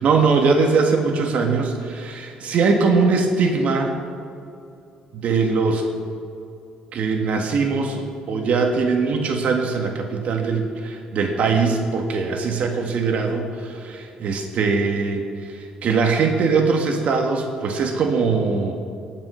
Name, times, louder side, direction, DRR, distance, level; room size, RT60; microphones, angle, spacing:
voice 1, 0.0-3.9 5.1-5.8 6.9-15.3 15.8-18.8, right 4 dB, 60° right, 3 dB, 1.7 m, -21 dB
17.5 x 6.0 x 5.7 m, 2.6 s
cardioid pair, 95°, 3 cm